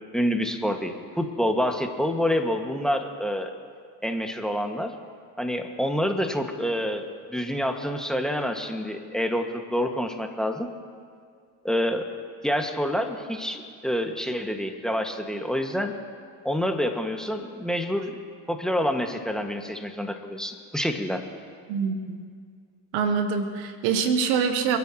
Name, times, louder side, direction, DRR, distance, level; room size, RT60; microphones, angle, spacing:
voice 1, 0.1-3.5 4.0-4.9 5.4-7.0 7.3-10.7 11.6-12.1 12.4-15.9 16.4-18.2 18.5-21.2, equal, ahead, 4 dB, 1.8 m, -27 dB
voice 2, 21.7-22.2 22.9-24.8, right 6 dB, 85° right, 7 dB, 1.3 m, -25 dB
28.5 x 10.5 x 3.0 m, 2.1 s
hypercardioid pair, 55°, 50 cm